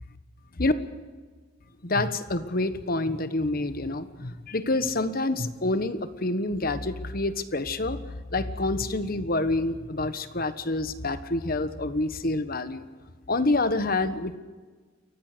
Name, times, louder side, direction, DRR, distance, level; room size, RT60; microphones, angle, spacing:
voice 1, 1.8-12.9 13.3-14.4, left 2 dB, 45° left, 11 dB, 1.3 m, -27 dB
29.0 x 15.0 x 6.8 m, 1.4 s
head